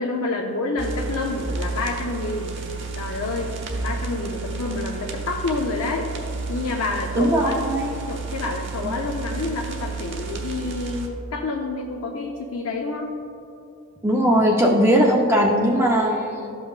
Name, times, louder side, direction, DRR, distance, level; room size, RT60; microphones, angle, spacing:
voice 1, 0.0-2.5 2.9-3.6 3.8-6.1 6.5-7.6 8.1-13.1, left 3 dB, 75° left, 0 dB, 0.5 m, -28 dB
sound 1, 0.8-11.1, right 4 dB, 55° right, 0.9 m, -32 dB
voice 2, 7.2-7.9 14.0-16.6, equal, 10° right, -1 dB, 0.5 m, -19 dB
12.5 x 5.5 x 2.4 m, 2.6 s
head